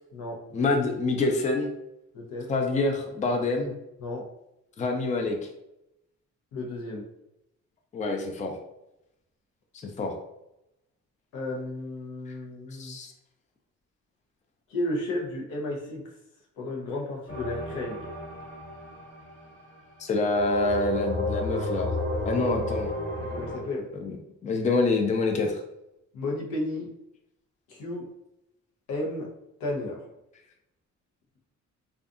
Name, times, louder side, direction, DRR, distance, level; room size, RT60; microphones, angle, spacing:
voice 1, 0.5-1.7 2.5-3.7 4.8-5.4 7.9-8.6 9.8-10.1 12.7-13.1 20.0-21.9 22.2-22.9 23.9-24.1 24.4-25.6, left 3 dB, 25° left, 3 dB, 0.4 m, -26 dB
voice 2, 2.1-2.5 4.0-4.3 6.5-7.1 11.3-13.0 14.7-16.1 16.6-18.1 22.4-22.5 23.2-23.9 26.1-26.9 27.7-28.1 28.9-29.3 29.6-30.0, left 1 dB, 85° left, -1 dB, 0.7 m, -33 dB
sound 1, 17.3-19.7 20.3-23.6, left 1 dB, 50° left, 1.1 m, -32 dB
2.5 x 2.3 x 2.4 m, 0.86 s
cardioid pair, 90°, 30 cm